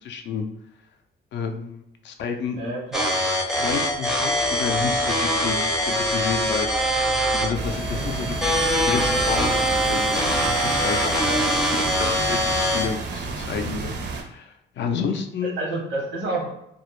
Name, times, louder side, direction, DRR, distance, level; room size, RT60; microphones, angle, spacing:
voice 1, 0.0-0.5 1.3-2.7 3.6-6.7 7.3-8.4 8.8-11.0 12.0-13.9 14.2-15.5, left 6 dB, 65° left, 5 dB, 0.4 m, -30 dB
voice 2, 2.5-3.1 7.9-8.2 11.1-11.5 15.4-16.5, right 2 dB, 90° right, -1 dB, 0.9 m, -29 dB
sound 1, 2.9-12.9, equal, ahead, 0.5 m, -23 dB
sound 2, 4.0-10.0, right 1 dB, 35° left, 0.7 m, -38 dB
sound 3, 7.5-14.2, right 4 dB, 60° right, 0.5 m, -31 dB
2.3 x 2.0 x 3.0 m, 0.79 s
cardioid pair, 90°, 20 cm